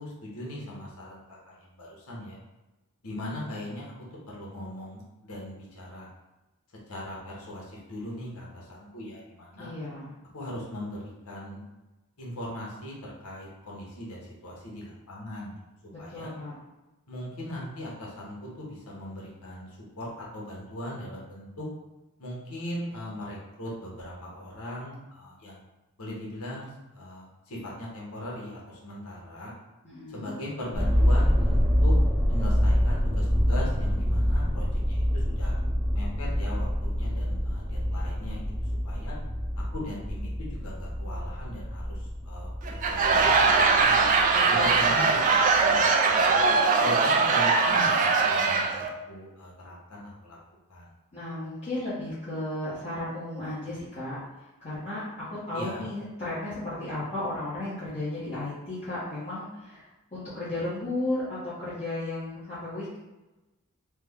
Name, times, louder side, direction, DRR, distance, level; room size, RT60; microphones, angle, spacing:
voice 1, 0.0-2.4 3.0-3.9 4.3-6.1 6.9-9.7 10.3-11.6 12.2-15.5 16.0-16.3 17.1-21.6 22.2-25.7 26.0-29.5 30.1-31.9 32.3-35.6 35.9-39.2 39.7-44.1 44.5-46.4 46.8-50.4 50.7-50.9 55.5-55.9, left 1 dB, 75° left, -4 dB, 1.1 m, -39 dB
voice 2, 9.5-10.1 16.1-16.5 29.8-30.3 44.3-45.1 51.1-54.2 54.6-63.0, left 1 dB, 30° left, -12 dB, 0.9 m, -34 dB
sound 1, 30.7-44.9 45.5-45.6, equal, 10° right, 0.7 m, -26 dB
Laughter / Crowd, 42.7-48.9, right 4 dB, 35° right, 0.3 m, -21 dB
3.3 x 2.1 x 3.5 m, 1.1 s
head